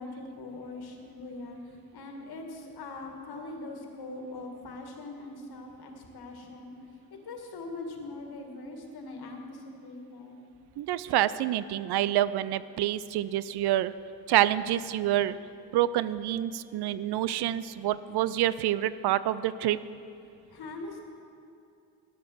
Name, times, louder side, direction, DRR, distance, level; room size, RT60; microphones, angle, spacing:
voice 1, 0.0-6.7 7.1-10.4 20.5-21.0, left 2 dB, 60° left, 2 dB, 2.0 m, -42 dB
voice 2, 10.8-13.9 14.3-15.4 15.7-19.8, right 13 dB, 65° right, 16 dB, 0.5 m, -27 dB
12.0 x 7.7 x 6.3 m, 2.5 s
supercardioid pair, 60°, 42 cm